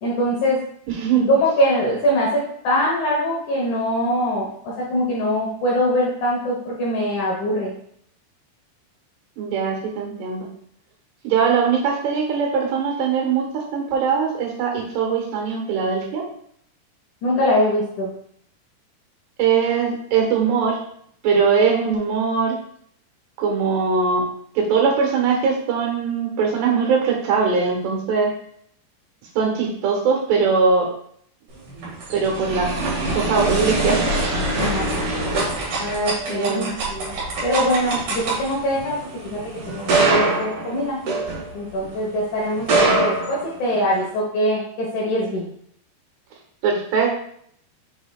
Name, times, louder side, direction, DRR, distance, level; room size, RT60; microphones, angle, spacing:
voice 1, 0.0-0.6 1.3-7.7 17.2-18.1 34.6-35.0 35.8-37.1 37.4-41.0 41.5-45.5, equal, 65° left, -3 dB, 2.0 m, -23 dB
voice 2, 0.9-1.3 9.4-10.5 11.2-16.2 19.4-20.8 21.2-22.6 23.4-24.2 24.6-28.3 29.4-30.9 32.1-32.7 33.1-34.4 35.1-35.2 36.3-36.7 46.6-47.1, right 5 dB, 85° right, 1 dB, 3.4 m, -21 dB
sound 1, 31.6-41.9 42.5-44.0, right 2 dB, 55° right, 3.1 m, -24 dB
7.1 x 5.7 x 2.3 m, 0.66 s
omnidirectional pair, 4.7 m